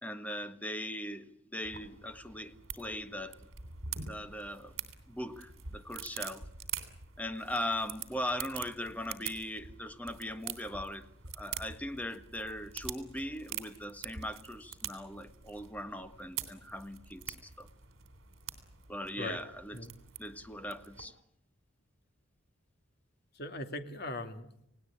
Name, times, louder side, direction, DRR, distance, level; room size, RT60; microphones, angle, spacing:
voice 1, 0.0-3.4 4.1-4.7 5.1-6.4 7.2-11.1 11.3-17.7 18.9-19.8 20.2-21.1, left 1 dB, 5° left, 9 dB, 1.5 m, -39 dB
sound 1, 1.6-21.1, right 8 dB, 75° right, 3.3 m, -45 dB
voice 2, 23.3-24.7, left 1 dB, 50° left, 6 dB, 2.6 m, -40 dB
29.5 x 18.5 x 8.7 m, 0.76 s
head